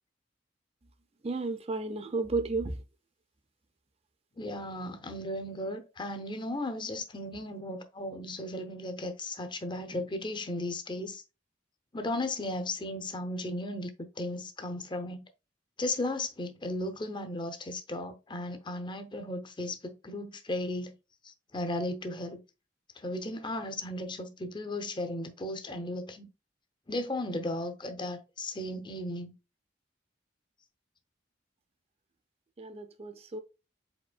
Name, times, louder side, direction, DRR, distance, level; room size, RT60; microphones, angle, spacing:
voice 1, 1.2-2.8 32.6-33.4, right 3 dB, 35° right, 0.5 m, -33 dB
voice 2, 4.4-11.2 11.9-13.9 14.2-15.2 15.8-20.9 21.5-22.4 23.0-26.3 26.9-29.3, left 1 dB, 25° left, 0.7 m, -35 dB
5.1 x 4.2 x 2.3 m
head